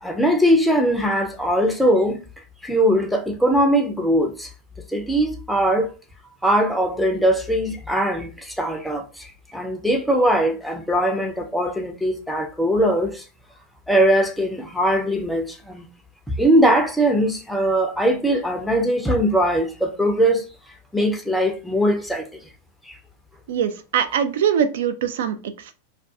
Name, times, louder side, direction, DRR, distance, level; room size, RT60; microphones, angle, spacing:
voice 1, 0.0-2.2 2.6-4.5 4.9-5.9 6.4-13.2 13.9-15.9 16.4-20.5 20.9-22.3 22.9-23.0, equal, ahead, 0.5 m, -20 dB
voice 2, 23.5-25.7, right 8 dB, 55° right, 0.3 m, -23 dB
2.3 x 2.2 x 2.6 m
figure-of-eight pair, 90°, 0 cm